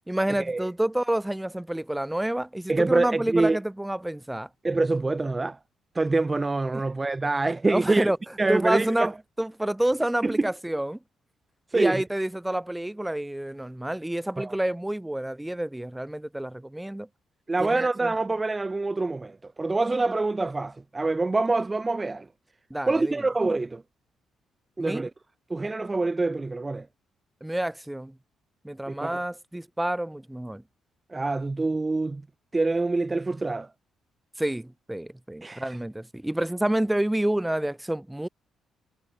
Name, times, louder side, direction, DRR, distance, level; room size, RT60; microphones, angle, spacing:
voice 1, 0.1-4.5 6.7-6.8 7.7-8.2 8.5-9.1 9.4-11.0 11.7-17.1 17.6-18.1 22.7-23.2 24.8-25.0 27.4-28.2 28.6-30.6 34.4-38.3, right 1 dB, 10° right, 2.1 m, -28 dB
voice 2, 2.7-3.6 4.6-5.6 5.9-8.1 8.4-9.1 10.2-10.4 11.7-12.0 14.4-14.5 17.5-22.3 22.9-23.8 24.8-25.1 25.5-26.9 28.9-29.2 31.1-32.2 32.5-33.7 35.4-35.8, right 3 dB, 25° right, 0.7 m, -26 dB
supercardioid pair, 60°, 0 cm